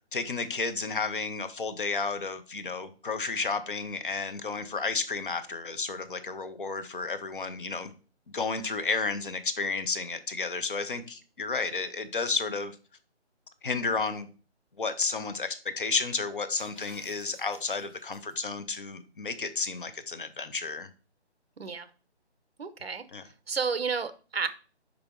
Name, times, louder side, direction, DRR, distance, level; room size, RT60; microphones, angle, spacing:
voice 1, 0.1-7.9 8.3-12.8 13.6-14.3 14.8-20.9 23.1-23.2, left 4 dB, 50° left, 0.8 m, -32 dB
Shatter, 16.6-18.3, left 1 dB, 30° left, 2.2 m, -53 dB
voice 2, 21.6-21.9 22.6-23.0 23.5-24.5, right 5 dB, 60° right, 0.8 m, -31 dB
5.4 x 5.0 x 4.6 m
hypercardioid pair, 170°, 34 cm